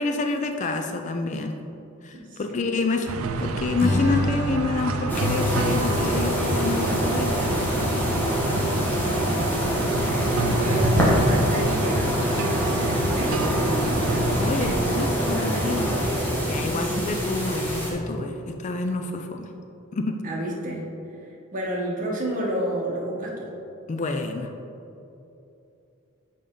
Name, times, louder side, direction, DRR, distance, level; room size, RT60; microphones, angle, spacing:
voice 1, 0.0-1.5 2.0-7.3 10.2-10.6 14.4-19.5 19.9-20.2 23.9-24.5, left 3 dB, 35° left, 5 dB, 0.4 m, -28 dB
voice 2, 2.1-2.5 8.8-9.6 10.0-14.8 15.2-15.8 16.6-17.2 20.2-20.9 21.3-23.5, right 1 dB, 40° right, -3 dB, 1.3 m, -31 dB
sound 1, 3.1-14.8, right 2 dB, 75° right, 0.4 m, -29 dB
Acoustic guitar / Strum, 3.8-7.1, equal, 50° left, 0.8 m, -29 dB
sound 2, 5.1-17.9, equal, 10° left, 1.3 m, -24 dB
6.8 x 5.4 x 3.7 m, 2.8 s
head